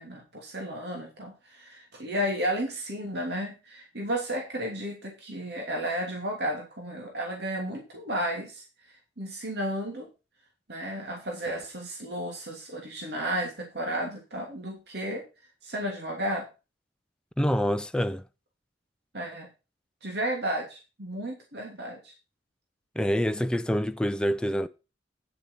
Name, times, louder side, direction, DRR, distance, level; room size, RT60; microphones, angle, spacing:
voice 1, 0.0-8.6 9.2-10.1 10.7-15.2 15.6-16.5 19.1-19.5 20.0-22.1, equal, 60° right, 2.9 m, -33 dB
voice 2, 17.4-18.2 23.0-24.7, equal, 5° left, 0.5 m, -26 dB
10.0 x 7.2 x 5.7 m
head